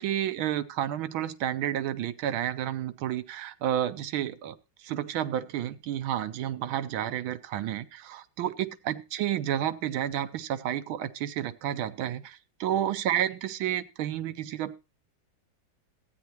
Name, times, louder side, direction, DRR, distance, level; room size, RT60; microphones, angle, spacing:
voice 1, 0.0-4.6 4.8-14.8, right 11 dB, 85° right, 13 dB, 1.6 m, -31 dB
14.5 x 9.3 x 2.9 m, 0.27 s
omnidirectional pair, 2.2 m